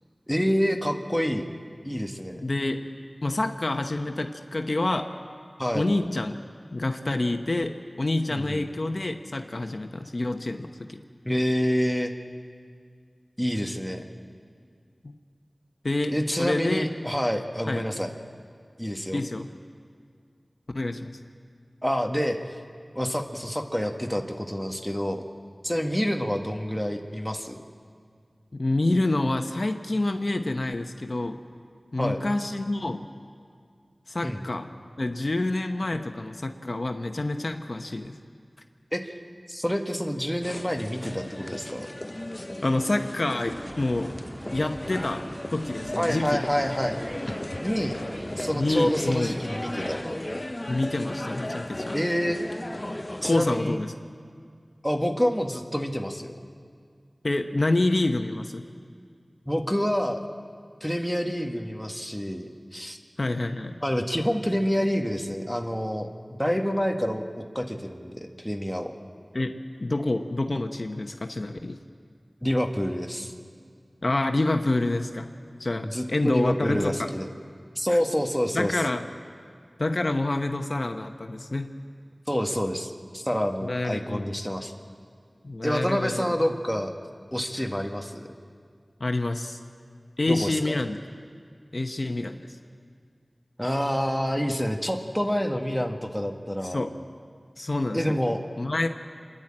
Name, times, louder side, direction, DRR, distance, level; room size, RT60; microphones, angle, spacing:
voice 1, 0.3-1.5 1.8-2.4 5.6-5.8 8.3-8.6 11.3-12.1 13.4-14.1 16.1-18.1 18.8-19.2 21.8-22.4 23.0-25.2 25.6-27.6 32.0-32.2 34.2-34.4 38.9-39.1 39.5-41.9 46.0-47.0 47.6-48.0 48.4-50.0 51.9-52.4 53.2-53.8 54.8-56.4 59.5-60.2 60.8-63.0 63.8-66.1 66.4-68.9 72.4-73.3 75.8-77.3 77.8-78.8 82.3-84.7 85.6-86.9 87.3-88.3 90.3-90.8 93.6-96.8 97.9-98.4, equal, ahead, 3 dB, 1.8 m, -27 dB
voice 2, 2.4-2.9 3.2-5.1 5.7-6.4 6.7-11.0 15.8-16.9 17.7-17.8 19.1-19.5 20.7-21.2 28.5-31.4 31.9-33.1 34.1-34.7 35.0-38.2 42.6-44.2 44.5-45.2 45.5-46.4 48.5-49.3 50.7-52.0 53.2-53.9 57.2-58.7 63.2-63.8 69.3-71.8 74.0-75.3 75.6-77.1 77.9-78.0 78.5-79.0 79.8-81.7 83.6-84.3 85.4-86.2 89.0-89.6 90.2-91.0 91.7-92.4 96.6-96.9 97.6-98.2 98.6-98.9, left 2 dB, 60° left, 5 dB, 1.0 m, -27 dB
sound 1, 40.4-53.6, left 1 dB, 30° left, 0.7 m, -36 dB
sound 2, 43.4-50.1, equal, 25° right, 1.7 m, -41 dB
27.5 x 11.0 x 8.8 m, 2.2 s
wide cardioid pair, 45°, 0 cm